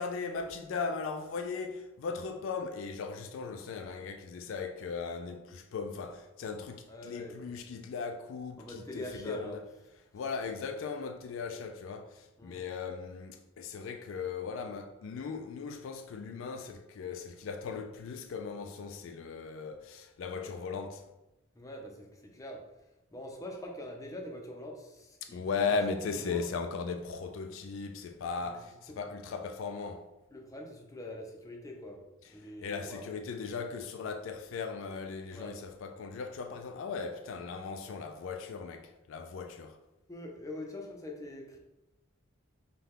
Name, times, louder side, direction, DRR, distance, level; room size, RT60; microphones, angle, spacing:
voice 1, 0.0-9.6 10.1-21.1 25.2-30.1 32.6-39.8, left 5 dB, 70° left, 0.3 m, -38 dB
voice 2, 6.9-7.5 8.6-9.6 12.4-12.6 21.5-26.5 28.4-28.6 28.9-29.0 30.3-33.1 35.3-35.6 40.1-41.6, left 1 dB, 15° left, 0.6 m, -44 dB
5.4 x 2.2 x 3.6 m
head